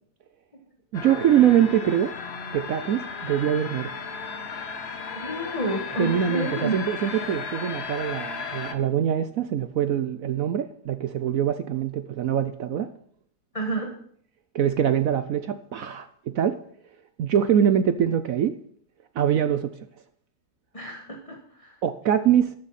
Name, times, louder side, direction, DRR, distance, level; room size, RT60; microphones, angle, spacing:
sound 1, 0.9-8.7, left 5 dB, 40° left, 1.1 m, -35 dB
voice 1, 0.9-2.1 2.5-3.9 5.9-12.9 14.5-16.6 17.2-18.6 19.1-19.8 21.8-22.5, right 9 dB, 65° right, 0.8 m, -23 dB
voice 2, 5.1-6.7 13.5-13.9 20.7-21.7, right 1 dB, 20° left, 1.5 m, -30 dB
13.0 x 12.5 x 4.2 m
omnidirectional pair, 2.0 m